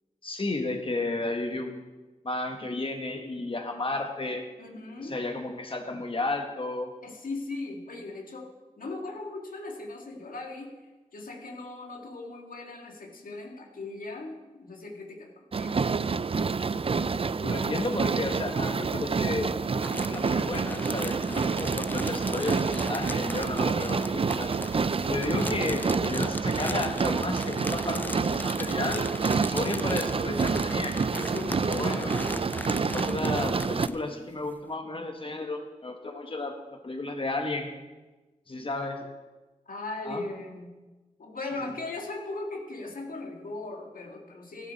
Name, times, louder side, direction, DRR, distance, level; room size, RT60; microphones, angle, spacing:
voice 1, 0.2-1.8 2.2-4.5 5.0-6.9 17.5-24.5 25.1-31.0 31.7-32.1 32.9-36.6 36.8-37.7 38.5-39.1 40.0-40.2 41.6-41.7, left 2 dB, 40° left, 3 dB, 1.4 m, -33 dB
voice 2, 4.6-5.2 7.0-16.2 16.7-18.1 31.1-32.3 33.1-33.3 38.8-38.9 39.7-40.7 41.2-44.7, left 2 dB, 90° left, 1 dB, 2.0 m, -39 dB
sound 1, 15.5-33.9, right 5 dB, 45° right, 0.4 m, -28 dB
sound 2, 19.8-34.1 34.7-34.8, left 1 dB, 15° left, 0.5 m, -39 dB
15.0 x 11.0 x 4.2 m, 1.2 s
wide cardioid pair, 60°, 14 cm